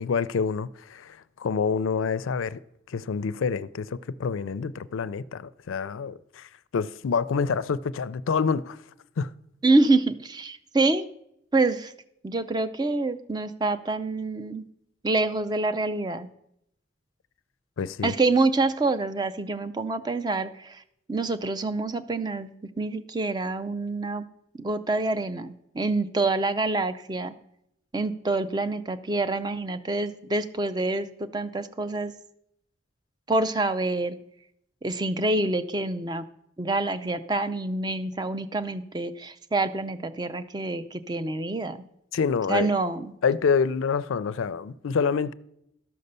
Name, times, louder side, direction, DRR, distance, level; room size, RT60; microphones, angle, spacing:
voice 1, 0.0-2.6 2.9-8.8 9.2-9.3 17.8-18.1 42.1-42.7 43.2-45.3, left 5 dB, 90° left, 0.4 m, -27 dB
voice 2, 9.6-11.1 11.5-11.9 12.2-14.6 15.0-16.3 18.0-20.8 21.1-22.5 22.8-24.2 24.6-27.3 27.9-32.1 33.3-34.2 34.8-36.2 36.6-41.8 42.5-43.1, right 2 dB, 20° right, 0.5 m, -26 dB
12.5 x 5.4 x 6.7 m
head